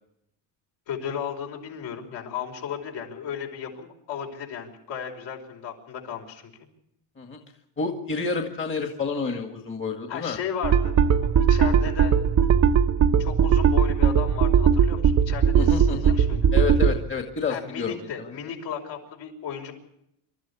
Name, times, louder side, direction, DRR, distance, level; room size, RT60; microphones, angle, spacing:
voice 1, 0.9-6.5 10.1-10.9 11.2-12.2 13.2-16.5 17.5-19.7, left 8 dB, 65° left, 2 dB, 5.3 m, -35 dB
voice 2, 7.8-10.4 15.5-16.1 16.5-18.5, left 5 dB, 25° left, 4 dB, 2.0 m, -29 dB
sound 1, 10.6-17.0, right 7 dB, 35° right, 1.0 m, -19 dB
27.0 x 13.5 x 8.7 m, 0.79 s
cardioid pair, 150°, 47 cm